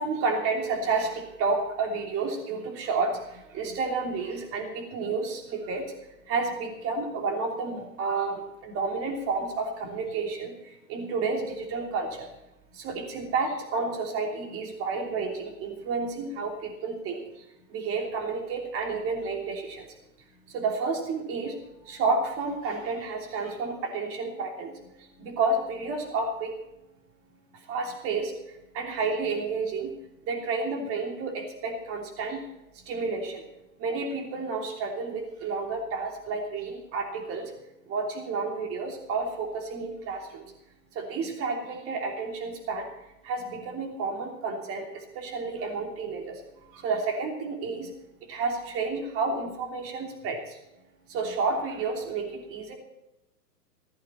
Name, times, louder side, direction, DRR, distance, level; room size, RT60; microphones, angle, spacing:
voice 1, 0.0-5.9 6.3-12.3 12.7-17.4 17.7-19.9 20.5-21.6 21.8-24.9 25.2-26.5 27.7-30.0 30.2-32.4 32.8-33.4 33.8-37.5 37.9-40.4 40.9-42.9 43.2-46.4 46.7-47.9 48.2-50.6 51.1-52.7, right 4 dB, 30° right, 3 dB, 3.1 m, -31 dB
15.5 x 14.5 x 4.3 m, 0.92 s
hypercardioid pair, 120°, 49 cm